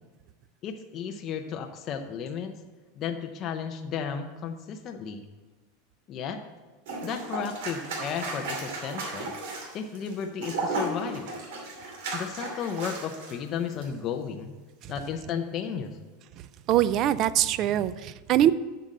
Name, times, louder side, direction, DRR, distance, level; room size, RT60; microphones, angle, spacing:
voice 1, 0.6-2.5 3.0-5.2 6.1-6.4 7.0-9.3 9.7-11.3 12.1-14.5 14.9-16.0, left 7 dB, 25° left, 5 dB, 0.6 m, -34 dB
sound 1, 6.9-13.4 13.7-13.9, right 2 dB, 70° right, 2.6 m, -34 dB
voice 2, 16.7-18.5, right 12 dB, 30° right, 16 dB, 0.3 m, -23 dB
7.7 x 6.6 x 7.3 m, 1.2 s
supercardioid pair, 180°, 0 cm